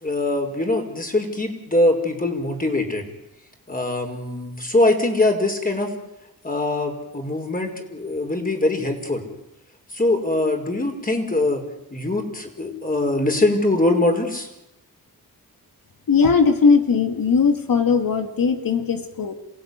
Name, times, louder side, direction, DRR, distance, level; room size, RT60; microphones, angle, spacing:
voice 1, 0.0-3.0 3.7-5.9 6.4-9.2 9.9-11.6 11.9-14.5, left 2 dB, 25° left, 4 dB, 5.2 m, -22 dB
voice 2, 16.1-19.3, left 5 dB, 70° left, 6 dB, 2.4 m, -19 dB
27.5 x 17.0 x 9.7 m, 0.92 s
cardioid pair, 80°, 36 cm